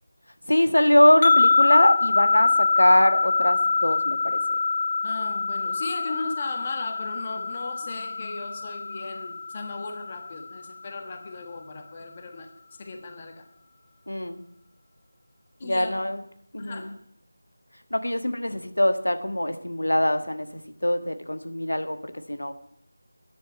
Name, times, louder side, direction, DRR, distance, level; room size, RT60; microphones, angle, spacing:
voice 1, 0.5-4.4 14.1-14.4 15.6-16.2 16.5-16.9 17.9-22.0 22.3-22.5, left 1 dB, 80° left, 8 dB, 1.4 m, -22 dB
sound 1, 1.2-10.5, left 4 dB, 40° left, 0.6 m, -24 dB
voice 2, 5.0-12.5 12.8-13.5 15.6-15.9 16.6-16.9, left 3 dB, 25° left, 5 dB, 1.4 m, -36 dB
10.0 x 7.8 x 8.9 m, 0.73 s
figure-of-eight pair, 165°, 0 cm